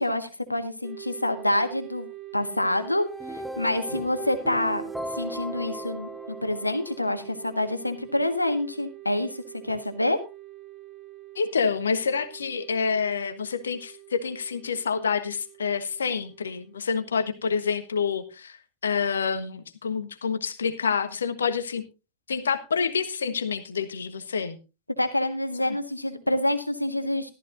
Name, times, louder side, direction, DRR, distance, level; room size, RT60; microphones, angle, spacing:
voice 1, 0.0-4.8 5.1-10.2 25.0-27.3, left 1 dB, 85° left, 8 dB, 1.6 m, -27 dB
sound 1, 0.8-18.2, right 17 dB, 35° right, 1.5 m, -45 dB
sound 2, 3.0-7.3, equal, ahead, 1.0 m, -37 dB
voice 2, 11.3-18.6 18.8-21.8 22.3-24.6, left 6 dB, 70° left, 11 dB, 1.3 m, -27 dB
14.5 x 13.0 x 2.6 m, 0.30 s
figure-of-eight pair, 90°, 0 cm